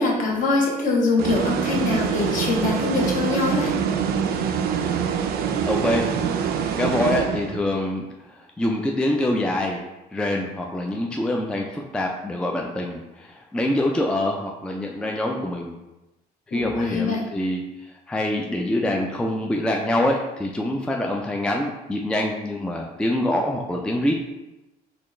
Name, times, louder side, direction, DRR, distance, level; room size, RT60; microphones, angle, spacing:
voice 1, 0.0-3.7 16.5-17.2, left 3 dB, 50° left, -2 dB, 1.0 m, -23 dB
sound 1, 1.2-7.8, right 7 dB, 65° right, 0.4 m, -25 dB
voice 2, 5.7-6.1 6.3-9.8 10.1-15.7 16.5-17.6 18.1-24.2, left 1 dB, 5° left, 1 dB, 0.3 m, -25 dB
4.1 x 2.3 x 3.2 m, 1.0 s
cardioid pair, 110°, 17 cm